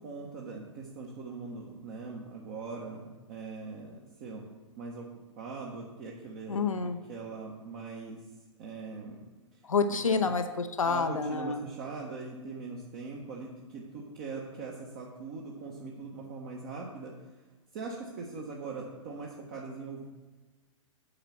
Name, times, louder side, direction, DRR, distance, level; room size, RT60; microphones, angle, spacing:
voice 1, 0.0-4.4 4.8-5.1 5.3-8.2 8.6-9.2 10.1-10.2 10.8-17.1 17.7-20.0, right 4 dB, 40° right, -3 dB, 1.4 m, -41 dB
voice 2, 6.5-7.0 9.6-11.6, left 5 dB, 80° left, 8 dB, 0.7 m, -28 dB
8.7 x 4.9 x 5.9 m, 1.2 s
figure-of-eight pair, 110°, 17 cm